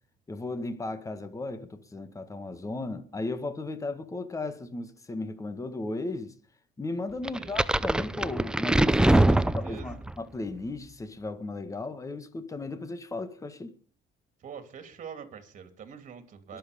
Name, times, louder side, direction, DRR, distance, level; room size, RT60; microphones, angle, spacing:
voice 1, 0.3-6.3 6.8-9.3 9.7-13.7 16.5-16.6, left 2 dB, 20° left, 1.8 m, -36 dB
voice 2, 7.2-7.6 9.2-10.0 14.4-16.6, right 7 dB, 50° right, 3.1 m, -45 dB
sound 1, 7.3-10.1, right 1 dB, 5° right, 0.6 m, -23 dB
22.5 x 7.8 x 5.3 m
cardioid pair, 110°, 17 cm